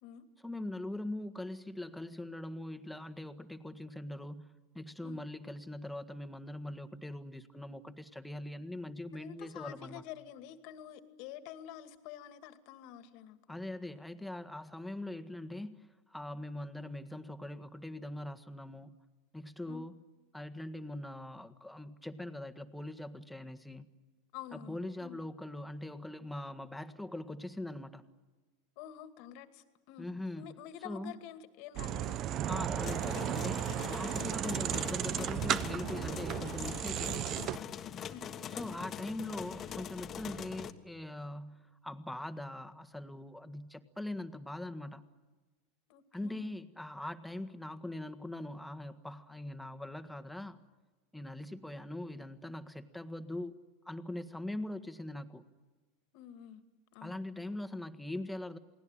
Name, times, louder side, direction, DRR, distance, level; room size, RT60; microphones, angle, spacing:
voice 1, 0.4-10.0 13.5-19.0 19.3-20.0 20.3-23.9 24.5-28.1 30.0-30.5 30.8-31.1 32.5-37.3 38.5-45.1 46.1-50.6 51.1-53.6 53.8-55.4 57.0-58.6, left 1 dB, 5° left, 9 dB, 1.7 m, -42 dB
voice 2, 9.1-13.6 19.7-19.9 24.3-25.2 28.8-30.1 30.4-32.2 38.1-38.7 45.9-46.5 56.1-56.6 56.9-57.2, left 10 dB, 60° left, 9 dB, 2.3 m, -48 dB
sound 1, 31.8-37.6, right 11 dB, 45° right, 1.0 m, -35 dB
sound 2, 32.8-40.7, left 8 dB, 35° left, 1.6 m, -42 dB
28.5 x 19.5 x 9.0 m, 1.3 s
hypercardioid pair, 105°, 0 cm